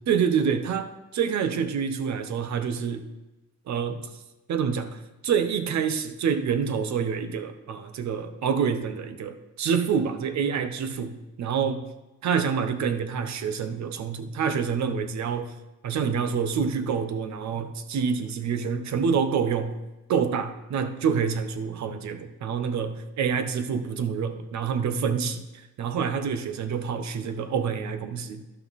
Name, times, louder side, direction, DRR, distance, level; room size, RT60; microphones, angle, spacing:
voice 1, 0.1-3.1 3.7-4.2 4.5-11.9 12.2-15.5 15.8-19.8 20.1-28.4, right 6 dB, 65° right, 9 dB, 0.9 m, -27 dB
11.5 x 5.8 x 4.1 m, 1.0 s
cardioid pair, 90°, 30 cm